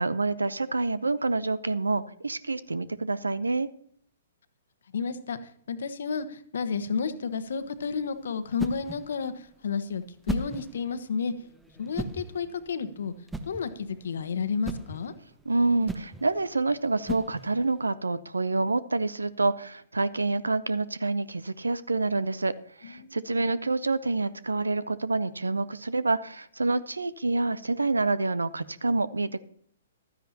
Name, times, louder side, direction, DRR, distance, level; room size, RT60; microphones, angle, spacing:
voice 1, 0.0-3.7 15.5-29.4, right 3 dB, 75° right, 18 dB, 0.6 m, -27 dB
voice 2, 4.9-5.4 5.7-11.3 11.8-13.1 13.5-15.1 22.8-23.2, left 5 dB, 55° left, 11 dB, 1.2 m, -31 dB
sound 1, 7.3-17.8, right 2 dB, 5° right, 0.8 m, -39 dB
15.0 x 13.0 x 2.9 m, 0.64 s
figure-of-eight pair, 115°, 0 cm